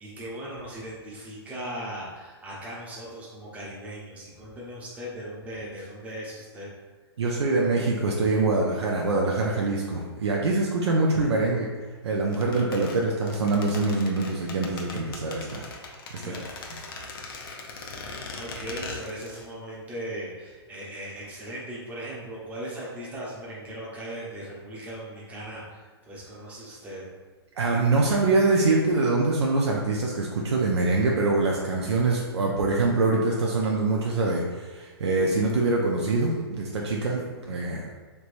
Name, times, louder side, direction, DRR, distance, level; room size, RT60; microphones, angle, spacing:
voice 1, 0.0-6.7 16.2-17.1 17.9-27.1, right 1 dB, 10° right, -6 dB, 0.7 m, -38 dB
voice 2, 7.2-11.7 12.0-15.6 16.1-16.3 27.6-37.9, right 3 dB, 80° right, -2 dB, 0.5 m, -24 dB
sound 1, 12.3-19.5 19.7-19.8, left 3 dB, 55° left, 0.6 m, -40 dB
3.3 x 3.0 x 2.5 m, 1.4 s
hypercardioid pair, 135°, 14 cm